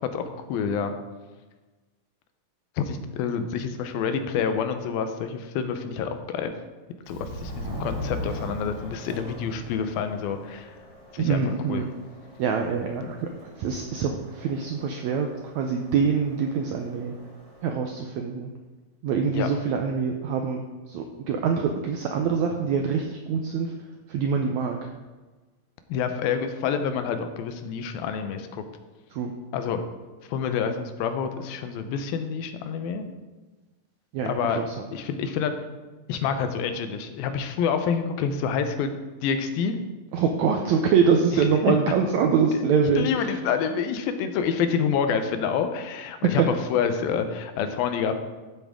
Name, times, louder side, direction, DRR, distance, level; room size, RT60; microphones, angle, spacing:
voice 1, 0.1-0.9 2.8-6.5 7.1-10.7 11.1-11.4 11.7-11.8 19.3-19.5 25.9-28.6 29.5-29.8 30.3-33.1 34.3-34.6 34.9-35.5 36.1-38.9 39.2-39.8 41.3-41.8 43.0-48.1, left 7 dB, 90° left, 8 dB, 2.7 m, -27 dB
Subway metro underground, 7.1-17.7, equal, 50° right, 0.8 m, -40 dB
voice 2, 11.2-11.9 12.4-15.3 15.5-17.1 17.6-18.5 19.0-23.7 24.1-24.8 29.1-29.3 34.1-34.9 40.1-43.4, right 6 dB, 85° right, 3 dB, 1.6 m, -25 dB
13.0 x 8.1 x 3.7 m, 1.2 s
omnidirectional pair, 4.1 m